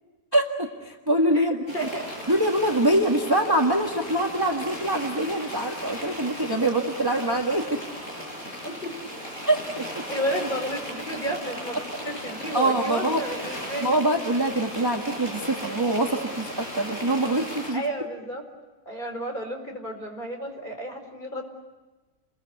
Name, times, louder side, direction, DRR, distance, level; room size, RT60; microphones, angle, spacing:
voice 1, 0.3-1.6 2.3-7.8 9.5-10.0 12.1-13.2 13.8-17.8, right 1 dB, 15° right, 2 dB, 1.7 m, -24 dB
sound 1, 1.7-17.7, equal, 45° left, 8.4 m, -37 dB
voice 2, 1.7-2.0 8.6-8.9 10.1-14.0 17.7-18.4 18.8-21.4, right 1 dB, 30° left, 3 dB, 4.9 m, -32 dB
30.0 x 22.0 x 8.3 m, 1.2 s
omnidirectional pair, 1.7 m